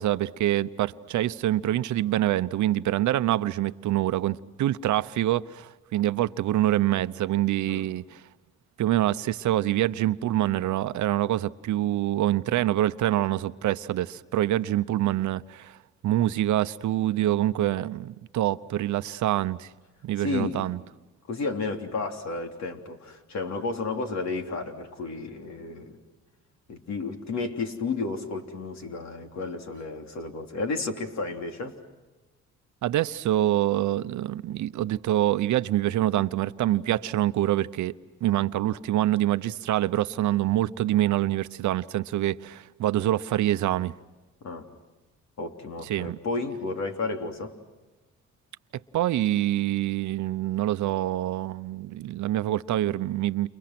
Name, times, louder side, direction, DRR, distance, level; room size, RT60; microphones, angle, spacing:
voice 1, 0.0-8.2 8.8-15.8 16.0-19.7 20.0-20.8 32.8-38.0 38.2-43.9 45.8-46.2 48.9-53.5, right 14 dB, 75° right, 0.8 m, -25 dB
voice 2, 20.2-20.7 21.3-26.0 26.7-31.7 44.4-44.7 45.4-47.5, left 3 dB, 65° left, 3.5 m, -32 dB
30.0 x 29.5 x 6.1 m
cardioid pair, 90°, 30 cm